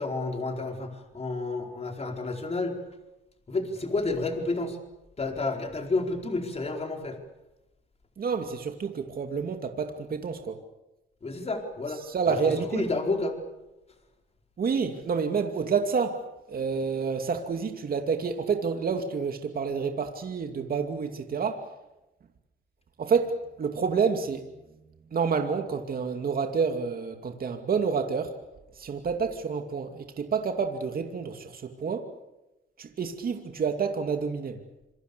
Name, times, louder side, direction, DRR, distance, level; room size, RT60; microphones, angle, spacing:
voice 1, 0.0-2.8 3.5-4.8 5.2-7.2 11.2-12.0 12.3-13.4, left 3 dB, 30° left, 3 dB, 4.6 m, -30 dB
voice 2, 8.2-10.6 12.1-12.8 14.6-16.2 16.5-21.6 23.0-24.4 25.1-28.3 28.8-32.1 32.8-34.6, right 5 dB, 50° right, 5 dB, 2.6 m, -28 dB
27.5 x 24.5 x 7.0 m, 0.97 s
cardioid pair, 90°, 20 cm